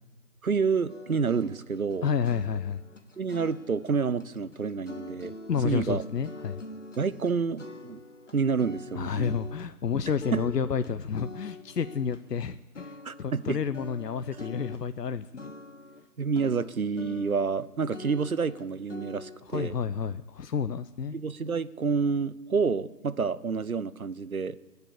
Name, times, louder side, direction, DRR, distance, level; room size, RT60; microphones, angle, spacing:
voice 1, 0.4-2.1 3.2-5.3 5.6-6.0 7.0-8.0 8.3-9.4 10.3-10.4 13.0-13.6 16.2-19.7 21.1-24.6, right 5 dB, 60° right, 16 dB, 0.7 m, -28 dB
sound 1, 0.9-12.5 12.8-13.5 13.7-16.1 16.4-17.7 17.9-19.7, left 2 dB, 50° left, 1.0 m, -44 dB
voice 2, 2.0-2.8 5.5-6.6 8.9-15.5 19.5-21.2, left 6 dB, 80° left, 12 dB, 0.7 m, -30 dB
17.5 x 6.8 x 8.5 m, 1.2 s
figure-of-eight pair, 165°, 48 cm